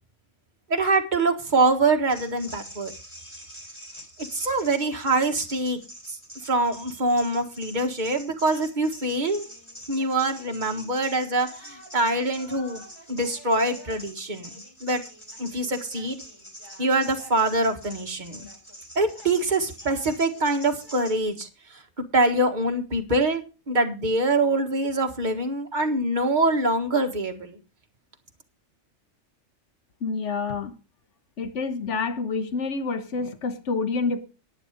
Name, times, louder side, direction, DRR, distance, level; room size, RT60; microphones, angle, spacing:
voice 1, 0.7-2.9 4.3-5.8 6.1-6.2 6.5-9.5 9.9-12.8 13.1-14.5 14.8-15.0 15.4-16.2 16.8-18.5 19.0-21.5 22.1-27.6, right 2 dB, 40° right, 1.8 m, -24 dB
sound 1, 2.0-21.2, equal, 20° left, 3.9 m, -45 dB
voice 2, 30.0-30.7 31.4-34.3, left 4 dB, 70° left, 1.5 m, -28 dB
11.0 x 10.0 x 5.1 m
omnidirectional pair, 1.3 m